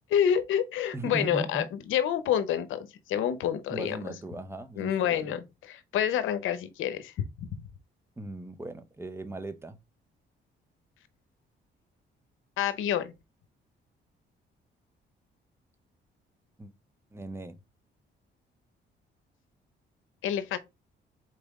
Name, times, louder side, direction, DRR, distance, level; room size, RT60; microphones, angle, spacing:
voice 1, 0.1-4.0 4.8-5.4 5.7-7.5 12.6-13.1 20.2-20.6, left 9 dB, 80° left, 0.7 m, -28 dB
voice 2, 0.9-1.7 3.7-5.3 8.2-9.8 16.6-16.7 17.1-17.6, right 2 dB, 10° right, 0.7 m, -38 dB
4.2 x 3.3 x 3.5 m
cardioid pair, 90°, 20 cm